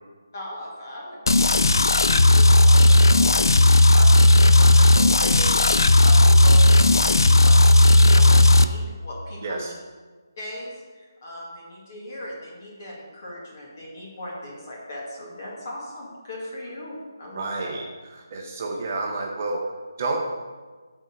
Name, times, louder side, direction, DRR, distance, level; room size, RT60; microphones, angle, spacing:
voice 1, 0.3-9.7 10.4-17.7, left 1 dB, 40° left, -3 dB, 2.3 m, -38 dB
sound 1, 1.3-8.6, left 1 dB, 75° left, 0.4 m, -15 dB
voice 2, 9.4-9.7 17.3-17.8 18.1-19.6 20.0-20.2, right 3 dB, 30° right, 1 dB, 0.7 m, -29 dB
7.6 x 4.3 x 6.6 m, 1.4 s
figure-of-eight pair, 170°, 2 cm